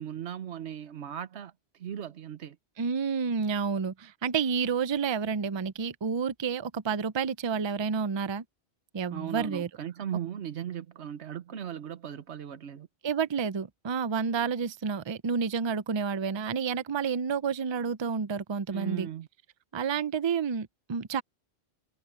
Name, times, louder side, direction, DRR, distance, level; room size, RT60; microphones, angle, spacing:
voice 1, 0.0-2.6 9.1-12.9 18.7-19.3, right 9 dB, 85° right, 1.2 m, -37 dB
voice 2, 2.8-8.4 8.9-9.7 13.0-19.1 19.7-21.2, right 6 dB, 35° right, 0.5 m, -30 dB
omnidirectional pair, 1.1 m